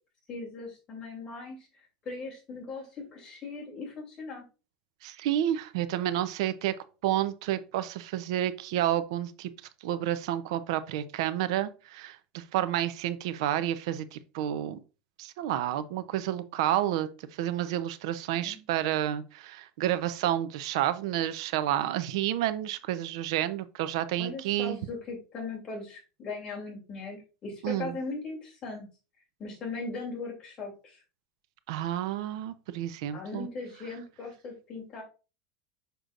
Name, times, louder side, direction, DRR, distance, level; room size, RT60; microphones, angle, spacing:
voice 1, 0.3-1.7 2.0-4.4 18.4-18.6 24.2-28.9 29.4-31.0 33.1-35.0, left 3 dB, 30° left, -2 dB, 2.9 m, -39 dB
voice 2, 5.0-6.7 7.0-9.5 9.8-14.8 15.2-24.8 27.6-28.0 31.7-33.5, right 12 dB, 75° right, 13 dB, 0.6 m, -30 dB
6.7 x 6.1 x 2.5 m, 0.32 s
supercardioid pair, 150°, 3 cm